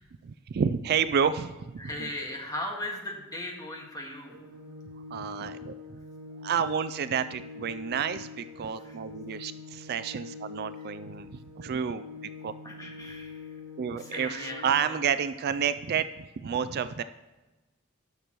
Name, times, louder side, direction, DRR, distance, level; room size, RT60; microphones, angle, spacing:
voice 1, 0.2-2.1 5.1-6.0 6.4-12.0 12.4-12.5 13.8-17.0, right 7 dB, 50° right, 13 dB, 0.3 m, -30 dB
voice 2, 1.8-4.4 8.8-9.0 12.6-13.4 14.0-14.9, left 1 dB, 15° left, 0 dB, 1.8 m, -37 dB
Organ, 4.3-15.2, left 4 dB, 85° right, 2.0 m, -44 dB
18.0 x 6.7 x 3.1 m, 1.1 s
head